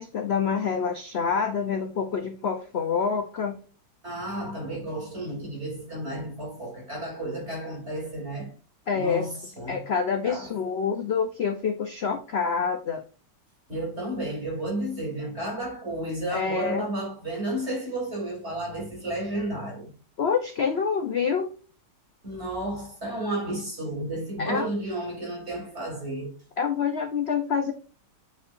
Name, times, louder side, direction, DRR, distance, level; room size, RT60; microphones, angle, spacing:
voice 1, 0.0-3.6 8.9-9.3 9.7-13.0 16.3-16.8 20.2-21.5 24.4-24.7 26.6-27.7, left 6 dB, 60° left, 0.7 m, -27 dB
voice 2, 4.0-8.5 8.9-9.8 10.2-10.5 13.7-19.9 22.2-26.3, right 1 dB, 35° right, 3.7 m, -32 dB
8.6 x 5.1 x 2.6 m
omnidirectional pair, 2.0 m